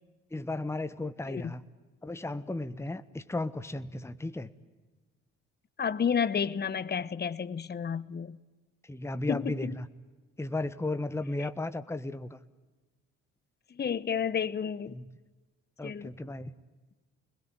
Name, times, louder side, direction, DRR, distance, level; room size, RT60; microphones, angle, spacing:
voice 1, 0.3-1.6 2.0-4.5 8.8-9.9 10.4-12.4 14.9-15.1 15.8-16.5, left 2 dB, 5° left, 1.3 m, -35 dB
voice 2, 5.8-8.4 9.3-9.7 11.4-11.5 13.7-14.9 15.8-16.1, left 7 dB, 25° left, 1.0 m, -31 dB
26.5 x 21.0 x 9.5 m
hypercardioid pair, 55°, 38 cm